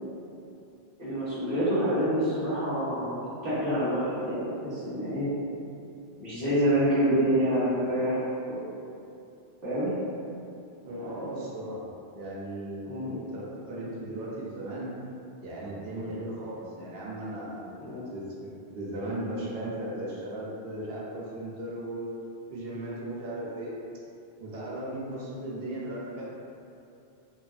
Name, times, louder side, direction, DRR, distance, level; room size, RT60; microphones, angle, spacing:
voice 1, 1.0-5.3 6.2-8.6 9.6-9.9 11.0-11.3 12.8-13.2 17.8-18.0, equal, 25° right, -12 dB, 0.8 m, -27 dB
voice 2, 10.9-14.9 15.4-18.5 18.7-22.1 22.5-23.7 24.4-26.2, right 1 dB, 70° right, -6 dB, 0.7 m, -37 dB
2.7 x 2.3 x 2.3 m, 2.6 s
omnidirectional pair, 1.1 m